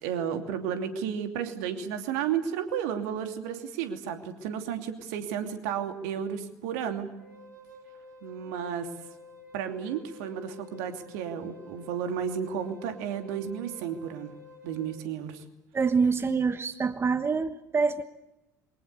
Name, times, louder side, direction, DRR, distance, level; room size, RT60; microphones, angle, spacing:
voice 1, 0.0-7.1 8.2-8.9 9.5-14.3 14.6-15.4, right 8 dB, 65° right, 7 dB, 2.8 m, -32 dB
Wind instrument woodwind instrument, 7.2-15.0, left 3 dB, 85° right, 2.4 m, -50 dB
voice 2, 15.7-18.0, right 5 dB, 25° right, 11 dB, 1.4 m, -26 dB
28.0 x 23.5 x 6.9 m, 0.97 s
figure-of-eight pair, 60°, 10 cm